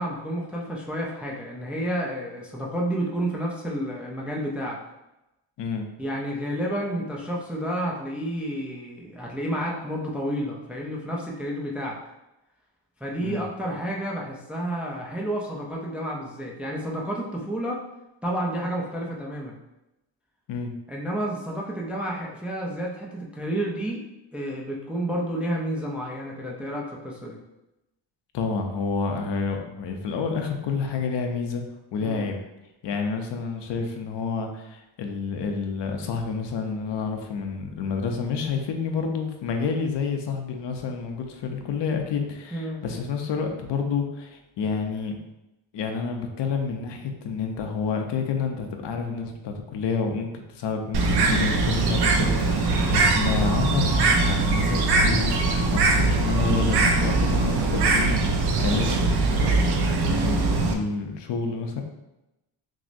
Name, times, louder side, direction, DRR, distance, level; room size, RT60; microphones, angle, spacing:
voice 1, 0.0-4.8 6.0-12.0 13.0-17.8 18.2-19.6 20.9-24.0 24.3-27.4 32.0-32.3 42.5-42.8 52.7-52.9, right 1 dB, 5° right, -2 dB, 0.4 m, -30 dB
voice 2, 28.3-31.6 31.9-32.4 32.8-45.2 45.7-59.1 59.4-61.8, left 5 dB, 70° left, 4 dB, 0.6 m, -29 dB
Bird, 50.9-60.7, right 3 dB, 60° right, 0.6 m, -22 dB
6.0 x 2.0 x 2.6 m, 0.94 s
wide cardioid pair, 145°, 44 cm